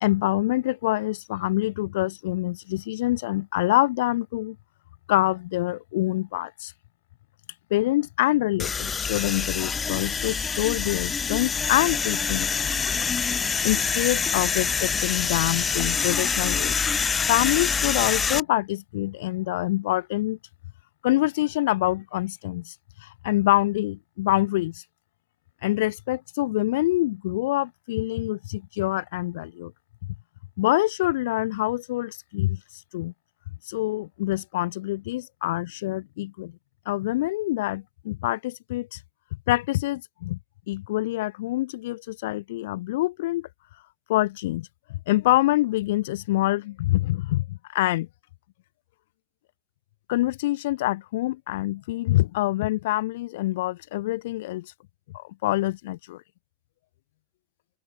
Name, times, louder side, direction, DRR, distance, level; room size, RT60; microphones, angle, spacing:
voice 1, 0.0-4.6 5.1-6.7 7.7-12.6 13.6-16.9 17.3-20.4 21.0-22.7 23.0-24.8 25.6-29.7 30.6-33.1 33.6-36.5 36.9-39.0 39.5-40.4 40.7-43.5 44.1-44.7 45.1-47.4 47.7-48.1 50.1-54.7 55.1-56.2, left 17 dB, 55° left, 0.5 m, -26 dB
sound 1, 8.6-18.4, left 5 dB, 15° left, 0.7 m, -26 dB
figure-of-eight pair, 90°, 0 cm